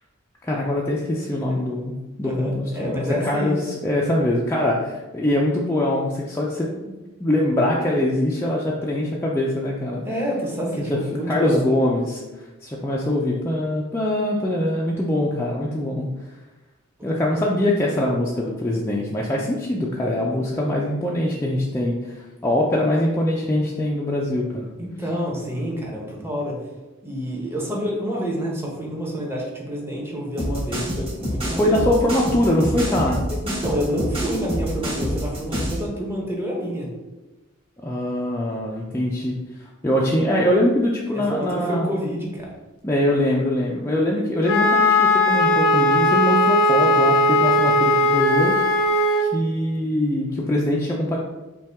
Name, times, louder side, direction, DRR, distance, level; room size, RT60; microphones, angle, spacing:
voice 1, 0.4-1.9 2.2-6.9 7.2-10.0 10.9-11.0 11.3-12.2 12.6-16.1 17.0-24.7 31.6-33.2 37.8-39.4 39.8-41.9 42.8-48.6 49.2-51.2, left 1 dB, 10° left, -4 dB, 0.4 m, -23 dB
voice 2, 2.2-3.6 10.0-11.9 24.8-26.6 27.0-31.8 33.3-36.9 41.1-42.5, equal, 10° right, -3 dB, 1.0 m, -28 dB
sound 1, 30.4-35.8, equal, 30° right, 1.2 m, -27 dB
Wind instrument woodwind instrument, 44.4-49.3, left 1 dB, 80° left, 0.6 m, -18 dB
5.5 x 2.3 x 3.4 m, 1.1 s
head